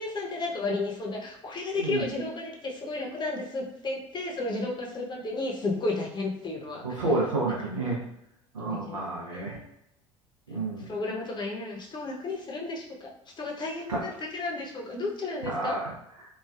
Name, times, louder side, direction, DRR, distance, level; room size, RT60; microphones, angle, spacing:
voice 1, 0.0-7.0 8.6-9.0 9.3-9.6 10.9-13.1 13.4-15.8, left 2 dB, 25° left, -2 dB, 0.8 m, -33 dB
voice 2, 6.8-8.0 8.5-9.6 10.5-10.8 13.9-14.0 15.4-16.3, right 2 dB, 85° right, -4 dB, 0.7 m, -30 dB
3.2 x 2.3 x 2.3 m, 0.79 s
figure-of-eight pair, 70°, 16 cm